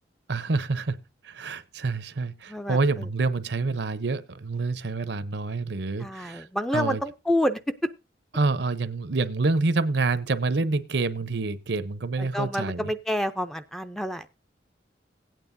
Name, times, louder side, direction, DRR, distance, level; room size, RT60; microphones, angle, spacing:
voice 1, 0.3-1.0 1.2-6.5 6.7-7.0 8.3-12.9, right 3 dB, 65° right, 0.7 m, -27 dB
voice 2, 2.5-3.1 6.0-7.9 12.2-14.3, equal, ahead, 0.5 m, -28 dB
16.5 x 9.1 x 2.6 m
head